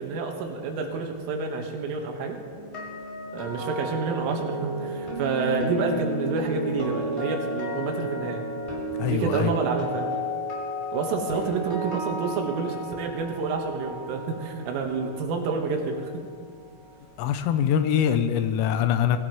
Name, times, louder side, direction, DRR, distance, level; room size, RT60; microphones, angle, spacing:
voice 1, 0.0-2.4 3.3-8.4 9.1-10.1 10.9-16.2, right 4 dB, 75° right, 2 dB, 3.8 m, -29 dB
sound 1, 2.5-16.6 16.8-17.1, equal, 10° left, 5.1 m, -33 dB
voice 2, 9.0-9.5 17.2-19.2, left 9 dB, 85° left, 9 dB, 3.3 m, -23 dB
25.0 x 16.0 x 3.1 m, 2.1 s
omnidirectional pair, 6.0 m